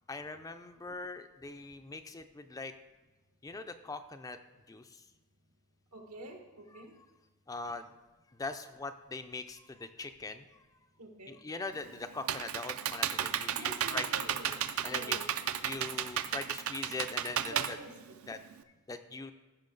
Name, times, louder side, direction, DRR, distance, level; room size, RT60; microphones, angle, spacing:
voice 1, 0.1-2.7 3.4-4.4 4.7-5.0 6.7-6.8 7.5-7.9 8.4-10.5 11.3-15.2 15.6-17.8 18.3-18.4 18.9-19.3, left 3 dB, 15° left, 9 dB, 0.4 m, -42 dB
voice 2, 5.9-6.9 11.0-11.4 13.5-14.5 14.9-15.2 17.4-18.2, right 2 dB, 85° right, 3 dB, 1.6 m, -47 dB
Computer keyboard, 11.7-18.6, right 9 dB, 65° right, 0.5 m, -34 dB
14.5 x 5.7 x 3.8 m, 1.2 s
head